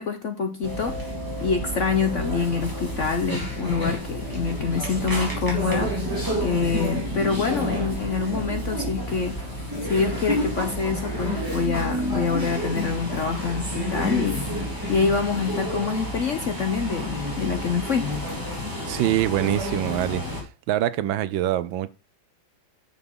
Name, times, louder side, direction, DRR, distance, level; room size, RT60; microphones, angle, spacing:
voice 1, 0.0-6.1 6.4-9.4 9.8-18.1, left 5 dB, 55° left, 0.8 m, -26 dB
sound 1, 0.6-20.4, equal, 10° right, 3.8 m, -29 dB
voice 2, 18.9-21.9, right 13 dB, 80° right, 1.4 m, -25 dB
9.7 x 7.1 x 3.6 m
omnidirectional pair, 2.2 m